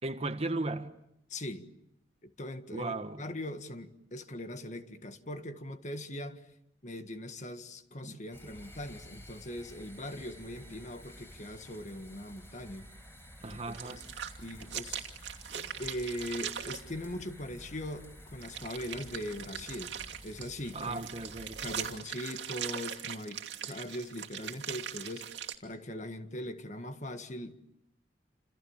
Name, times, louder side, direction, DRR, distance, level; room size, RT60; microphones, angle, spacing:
voice 1, 0.0-1.0 2.7-3.2 8.0-8.2 13.4-14.0 20.7-21.6, right 2 dB, 35° right, 1.5 m, -36 dB
voice 2, 1.3-1.7 2.2-6.5 6.8-12.9 13.5-14.0 14.4-15.1 15.5-21.0 21.6-27.6, left 1 dB, 45° left, 1.7 m, -41 dB
sound 1, 8.3-21.9, equal, 15° left, 4.8 m, -52 dB
sound 2, 13.5-16.8 18.4-25.5, right 9 dB, 90° right, 2.7 m, -40 dB
29.0 x 27.5 x 7.3 m
head